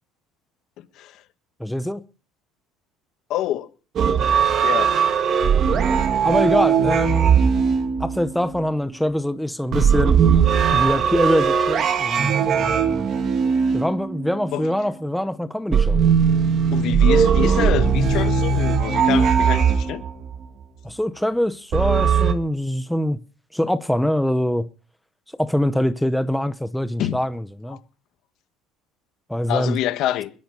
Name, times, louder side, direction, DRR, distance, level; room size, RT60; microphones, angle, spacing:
voice 1, 1.6-2.0 6.2-7.4 8.0-10.2 10.7-13.1 13.7-16.0 20.8-23.2 23.5-24.7 25.4-27.8 29.3-29.8, equal, ahead, 0.7 m, -24 dB
voice 2, 3.3-3.7 4.6-4.9 14.5-14.7 16.7-20.0 27.0-27.2 29.5-30.3, left 13 dB, 55° left, 1.5 m, -26 dB
sound 1, 4.0-8.6 9.7-14.5 15.7-20.4 21.7-22.3, right 6 dB, 35° right, 1.7 m, -19 dB
21.5 x 10.5 x 5.4 m
cardioid pair, 155°, 0 cm